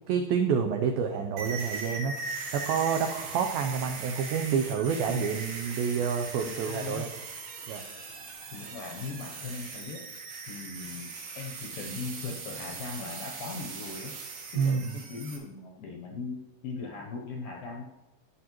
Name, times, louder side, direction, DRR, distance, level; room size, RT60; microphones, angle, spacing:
voice 1, 0.1-7.1 7.7-7.8 14.6-15.0, right 6 dB, 85° right, 4 dB, 2.1 m, -28 dB
sound 1, 1.4-15.4, right 4 dB, 60° right, 3.3 m, -40 dB
voice 2, 6.4-7.1 8.5-10.1 10.5-14.1 14.5-17.8, left 4 dB, 75° left, 1 dB, 2.1 m, -39 dB
13.5 x 10.0 x 3.0 m, 1.1 s
omnidirectional pair, 5.0 m